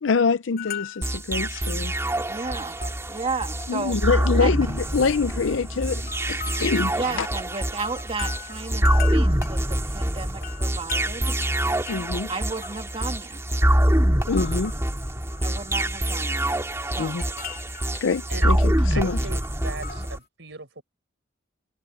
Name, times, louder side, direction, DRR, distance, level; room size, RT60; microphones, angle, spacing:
voice 1, 0.0-1.9 3.7-7.3 11.9-12.3 14.3-14.7 17.0-17.2 17.9-19.2, left 5 dB, 85° left, 0.6 m, -25 dB
sound 1, 0.6-1.3 1.6-1.8 2.1-4.0 4.3-5.2 5.7-13.7 14.0-14.9 15.2-15.8 16.1-20.2, left 11 dB, 55° left, 3.2 m, -40 dB
sound 2, 1.0-20.2, right 1 dB, 15° right, 2.6 m, -25 dB
voice 2, 2.3-2.7 3.1-4.0 4.4-4.5 7.0-11.4 12.3-13.4 15.4-16.5 16.9-17.2 19.8-20.1, right 4 dB, 30° right, 2.3 m, -33 dB
voice 3, 18.9-20.8, right 3 dB, 70° right, 5.5 m, -38 dB
head